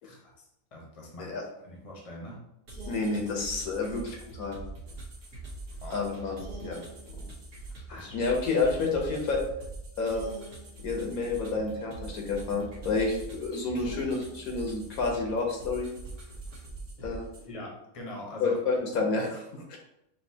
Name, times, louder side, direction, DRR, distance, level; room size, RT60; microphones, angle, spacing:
voice 1, 0.0-0.4 0.7-1.3 1.6-2.4 5.8-6.0 7.9-8.2 17.0-17.2 17.5-18.8, left 1 dB, 25° left, -1 dB, 0.9 m, -43 dB
sound 1, 2.7-17.5, right 2 dB, 80° right, 1.5 m, -43 dB
voice 2, 2.9-4.6 5.9-6.8 7.1-7.2 8.1-9.4 10.0-10.3 10.8-15.9 17.0-17.3 18.4-19.8, left 3 dB, 75° left, 1 dB, 1.3 m, -29 dB
6.0 x 2.6 x 2.7 m, 0.81 s
omnidirectional pair, 1.6 m